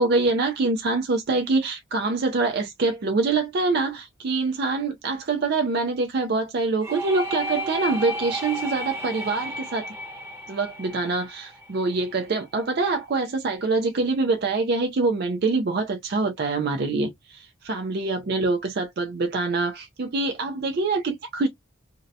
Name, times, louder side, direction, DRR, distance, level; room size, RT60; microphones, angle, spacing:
voice 1, 0.0-9.9 10.5-21.5, right 3 dB, 50° right, 0.4 m, -25 dB
sound 1, 6.8-12.5, right 1 dB, 15° right, 0.8 m, -33 dB
2.6 x 2.0 x 2.6 m
head